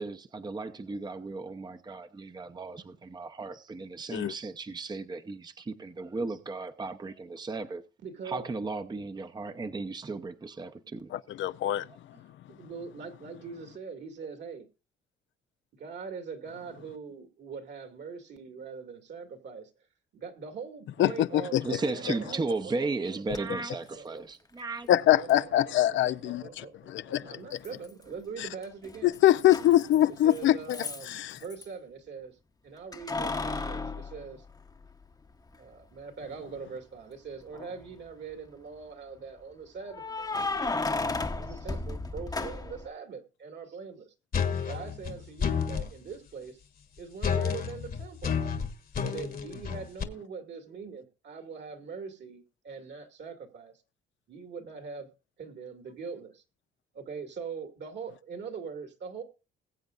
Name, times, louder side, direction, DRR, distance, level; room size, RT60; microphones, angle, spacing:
voice 1, 0.0-7.8 8.2-11.1 21.6-24.9, right 3 dB, 20° right, 0.8 m, -35 dB
voice 2, 8.0-8.5 12.5-14.7 15.8-19.7 20.1-23.2 23.9-24.3 25.0-29.1 30.2-32.4 32.6-34.4 35.6-40.4 40.9-44.1 44.6-46.6 47.0-48.3 49.0-53.7 54.3-55.1 55.4-56.4 56.9-59.2, right 5 dB, 60° right, 2.3 m, -42 dB
voice 3, 11.1-11.9 21.0-21.7 24.9-27.4 28.4-28.5 29.0-30.8 31.1-31.4, left 13 dB, 70° left, 0.5 m, -24 dB
Keys jangling, 23.3-23.4 25.3-25.4 27.6-28.2 28.5-31.7 32.9-35.0 35.5-35.6 37.4-38.0 39.9-42.9, left 3 dB, 20° left, 0.9 m, -34 dB
sound 1, 44.3-45.9 47.2-50.0, left 7 dB, 50° left, 1.4 m, -30 dB
21.0 x 7.9 x 2.5 m
cardioid pair, 90°, 20 cm